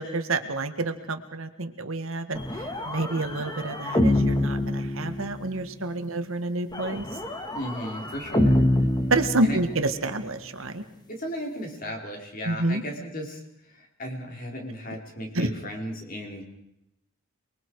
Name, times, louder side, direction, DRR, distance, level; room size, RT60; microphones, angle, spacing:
voice 1, 0.0-2.4 2.9-7.1 9.1-10.8 12.5-12.8 15.3-15.5, right 2 dB, 65° right, 8 dB, 1.6 m, -28 dB
sound 1, 2.3-5.6 6.7-10.0, left 1 dB, 20° left, 1.7 m, -26 dB
voice 2, 7.5-8.6 9.4-9.6 11.1-13.4 13.7-16.4, equal, 40° left, 1 dB, 4.3 m, -35 dB
29.0 x 22.0 x 4.8 m, 0.81 s
head